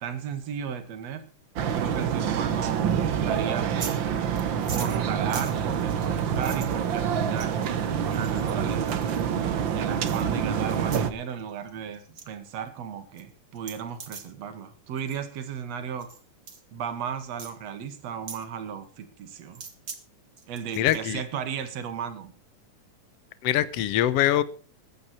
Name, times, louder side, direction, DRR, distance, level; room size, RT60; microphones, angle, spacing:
voice 1, 0.0-1.2 1.6-4.1 4.7-7.6 8.0-16.1 16.7-19.6 20.5-22.3, right 8 dB, 55° right, 9 dB, 2.7 m, -35 dB
sound 1, 1.6-11.1, right 8 dB, 80° right, 1.0 m, -27 dB
sound 2, 3.8-4.0 4.3-6.7 7.4-7.7 8.1-9.2 10.1-10.2 10.8-11.0 11.4-11.7 11.9-12.2 12.7-12.8 13.2-13.3 13.5-14.3 15.0-15.2 16.0-16.2 16.5-16.6 17.4-17.5 18.3-18.4 19.5-20.0 20.4-21.1, right 5 dB, 35° right, 2.1 m, -41 dB
voice 2, 20.8-21.2 23.4-24.4, left 12 dB, 70° left, 14 dB, 1.6 m, -23 dB
21.5 x 8.8 x 4.4 m, 0.40 s
omnidirectional pair, 3.8 m